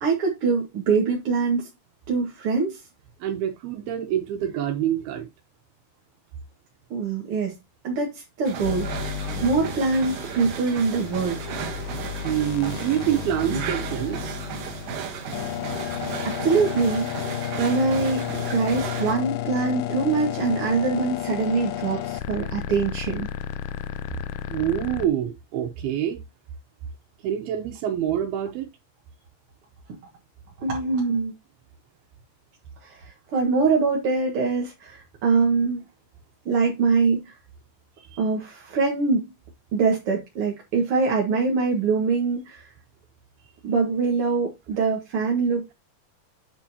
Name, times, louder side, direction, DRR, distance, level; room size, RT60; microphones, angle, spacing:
voice 1, 0.0-1.7 2.1-2.8 6.9-7.6 7.8-8.9 9.4-11.4 16.2-17.1 17.6-23.3 30.6-31.3 32.8-35.8 36.5-37.3 38.2-39.3 39.7-42.7 43.6-45.7, right 4 dB, 45° right, 2.2 m, -23 dB
voice 2, 3.2-5.3 12.2-14.4 24.5-26.2 27.2-28.7 38.0-38.2, right 11 dB, 85° right, 3.0 m, -26 dB
sound 1, 8.5-19.1, right 6 dB, 65° right, 2.7 m, -34 dB
sound 2, 8.6-25.1, left 12 dB, 85° left, 1.8 m, -32 dB
8.6 x 7.4 x 2.9 m
omnidirectional pair, 4.3 m